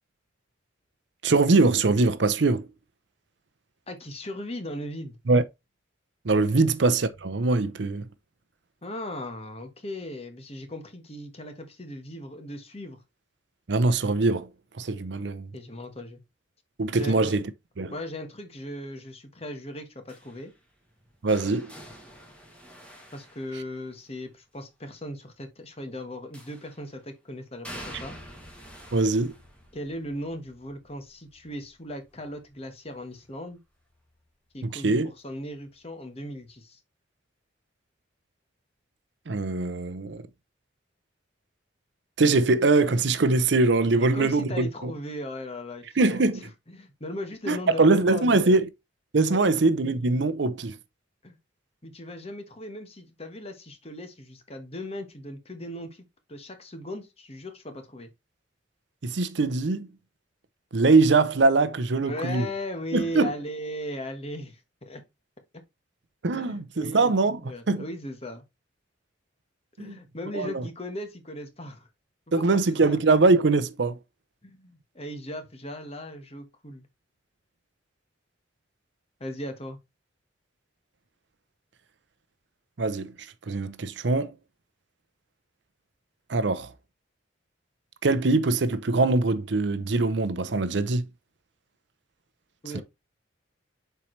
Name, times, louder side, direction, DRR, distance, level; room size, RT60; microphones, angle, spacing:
voice 1, 1.2-2.7 5.3-5.4 6.2-8.0 13.7-14.5 14.8-15.5 16.8-17.5 17.8-17.9 21.2-21.7 28.9-29.3 34.6-35.1 39.3-40.3 42.2-44.9 46.0-46.5 47.5-48.7 49.1-50.8 59.0-59.9 60.7-62.5 62.9-63.3 66.2-67.4 67.7-67.8 69.8-70.0 70.3-70.7 72.3-74.0 82.8-83.1 83.5-84.3 86.3-86.7 88.0-91.1 92.7-92.8, right 3 dB, 65° right, 0.6 m, -22 dB
voice 2, 3.9-5.2 6.5-6.7 8.8-13.0 15.5-16.2 16.9-17.4 17.9-20.5 23.1-28.1 29.7-33.6 34.5-36.8 44.0-46.3 46.7-48.6 49.2-49.6 51.2-51.4 51.8-56.0 56.3-58.1 62.0-65.0 66.3-67.1 67.4-68.4 69.8-71.9 72.5-73.0 74.4-76.9 79.2-79.8 92.6-92.8, left 1 dB, 30° left, 1.3 m, -38 dB
sound 1, 20.1-24.1 26.3-26.9 27.6-33.5 33.8-34.2 35.5-35.6, equal, 5° left, 1.7 m, -47 dB
7.1 x 4.6 x 3.2 m
head